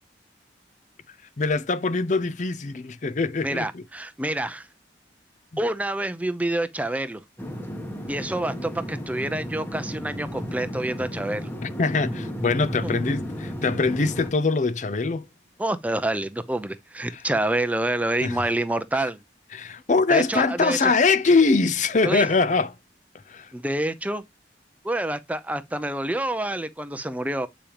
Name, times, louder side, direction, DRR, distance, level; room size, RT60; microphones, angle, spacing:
voice 1, 1.4-3.8 11.6-15.2 18.2-18.4 19.5-22.7 23.3-23.5, left 4 dB, 45° left, 0.5 m, -23 dB
voice 2, 3.4-4.7 5.6-7.2 8.1-11.5 12.8-13.2 15.6-19.2 20.1-20.9 22.0-22.3 23.5-24.2 24.8-27.5, right 1 dB, 10° right, 0.5 m, -27 dB
sound 1, 7.4-14.3, equal, 10° left, 1.1 m, -34 dB
8.7 x 5.0 x 2.9 m
head